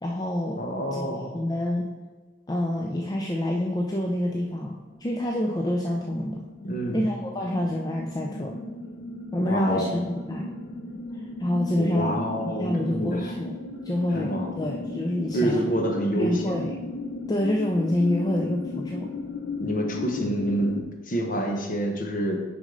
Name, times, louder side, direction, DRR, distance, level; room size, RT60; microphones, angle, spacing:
voice 1, 0.0-0.6 0.9-1.1 1.3-1.9 2.5-4.7 5.0-6.4 6.9-8.5 9.3-10.5 11.4-13.6 13.8-15.6 16.1-16.8 17.3-19.1, left 1 dB, 20° left, 0 dB, 0.4 m, -27 dB
voice 2, 0.6-1.4 6.6-7.1 9.5-9.9 11.8-13.3 14.1-14.6 15.3-16.7 19.6-22.4, right 1 dB, 45° left, 2 dB, 0.9 m, -28 dB
sound 1, 4.4-4.8 5.1-20.8, left 3 dB, 65° left, 0.6 m, -36 dB
6.3 x 5.3 x 3.8 m, 1.3 s
head